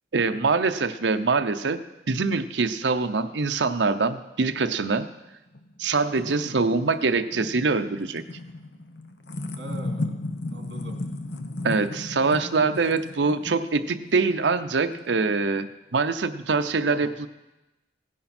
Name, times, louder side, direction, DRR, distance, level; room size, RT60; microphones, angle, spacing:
voice 1, 0.1-1.8 2.1-5.1 5.8-8.2 11.6-17.3, right 4 dB, 85° right, 9 dB, 0.7 m, -24 dB
sound 1, 5.5-15.6, left 2 dB, 70° left, 0.9 m, -36 dB
voice 2, 6.2-6.7 9.6-10.2 10.5-11.0 12.9-13.0 16.9-17.1, right 1 dB, 70° right, 2 dB, 2.3 m, -41 dB
16.5 x 10.0 x 4.3 m, 1.0 s
head